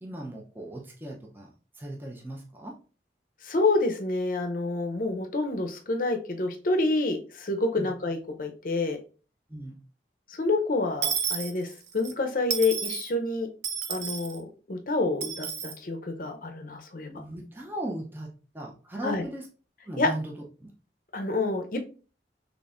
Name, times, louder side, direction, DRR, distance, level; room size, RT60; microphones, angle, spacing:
voice 1, 0.0-2.8 7.8-7.9 9.5-9.8 17.1-19.5 19.9-20.3 20.6-20.7, right 1 dB, 10° right, -1 dB, 0.5 m, -38 dB
voice 2, 3.4-9.0 10.3-13.5 13.9-17.1 19.0-19.2 20.0-20.1 21.1-21.8, left 2 dB, 50° left, 5 dB, 0.6 m, -28 dB
Dishes pots and pans / Coin (dropping), 11.0-12.1 12.5-13.1 13.6-14.4 15.2-15.8, right 7 dB, 75° right, 0.5 m, -31 dB
4.0 x 3.3 x 2.4 m, 0.37 s
head